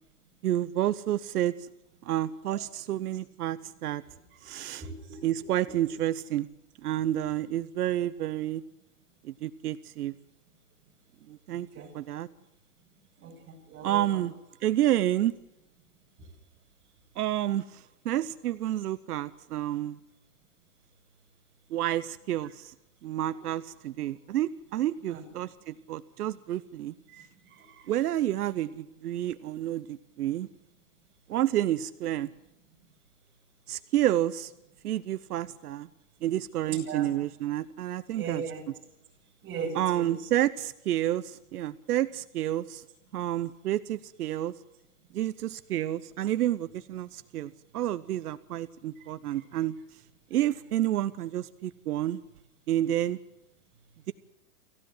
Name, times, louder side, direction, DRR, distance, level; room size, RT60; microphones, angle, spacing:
voice 1, 0.4-1.7 2.0-4.0 4.4-4.9 5.2-6.5 6.8-8.6 9.2-10.1 11.3-11.7 11.9-12.3 13.8-14.3 14.6-15.4 17.2-20.0 21.7-22.7 23.0-26.9 27.9-30.5 31.3-32.3 33.7-34.5 34.8-35.9 36.2-38.4 39.7-42.8 43.1-44.5 45.1-49.8 50.3-52.2 52.7-53.2, right 13 dB, 85° right, 14 dB, 0.9 m, -29 dB
voice 2, 4.4-5.2 5.7-5.8 11.5-11.9 13.2-14.3 25.1-25.2 27.1-27.9 36.7-37.1 38.1-38.6 39.4-40.2 49.0-49.1, right 5 dB, 25° right, 0 dB, 6.7 m, -39 dB
28.5 x 15.5 x 7.8 m, 0.92 s
hypercardioid pair, 145°, 45 cm